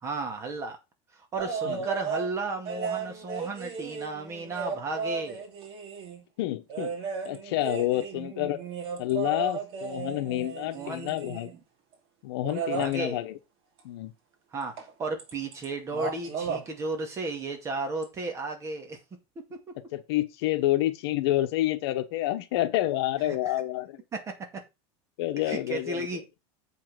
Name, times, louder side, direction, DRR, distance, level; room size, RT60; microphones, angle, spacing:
voice 1, 0.0-0.8 1.1-5.4 10.7-11.1 12.7-13.2 14.5-19.0 23.5-23.6 24.1-24.6 25.4-26.2, right 3 dB, 20° right, 2.1 m, -34 dB
sound 1, 1.4-2.3 2.7-6.2 6.7-11.6 12.4-12.9 14.8-14.9 15.2-15.7 15.9-16.6 18.0-18.1, right 6 dB, 40° right, 2.7 m, -35 dB
voice 2, 6.4-6.9 7.2-8.6 9.0-11.5 12.2-13.4 13.8-14.1 19.9-24.0 25.2-26.1, left 15 dB, 65° left, 1.2 m, -28 dB
7.6 x 5.9 x 6.0 m
supercardioid pair, 160°, 14 cm